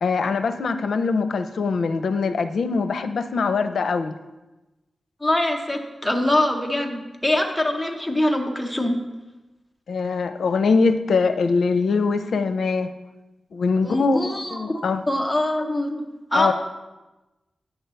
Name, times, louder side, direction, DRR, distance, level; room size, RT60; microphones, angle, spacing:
voice 1, 0.0-4.2 9.9-12.9 13.5-15.0 16.3-16.5, left 4 dB, 75° left, 10 dB, 0.5 m, -22 dB
voice 2, 5.2-9.0 13.8-16.0 16.3-16.5, left 1 dB, 5° left, 2 dB, 0.8 m, -23 dB
8.9 x 4.5 x 6.8 m, 1.1 s
wide cardioid pair, 135°, 0 cm